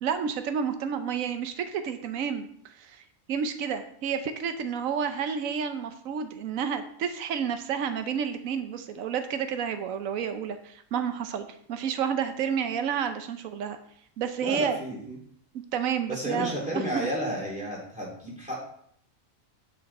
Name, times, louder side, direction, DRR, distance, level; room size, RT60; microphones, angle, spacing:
voice 1, 0.0-2.5 2.8-3.0 3.3-13.8 14.2-14.8 15.7-17.1, right 7 dB, 80° right, 8 dB, 1.2 m, -30 dB
voice 2, 14.4-15.2 16.1-18.5, equal, 5° right, -4 dB, 3.0 m, -32 dB
9.0 x 6.2 x 4.2 m, 0.65 s
omnidirectional pair, 1.4 m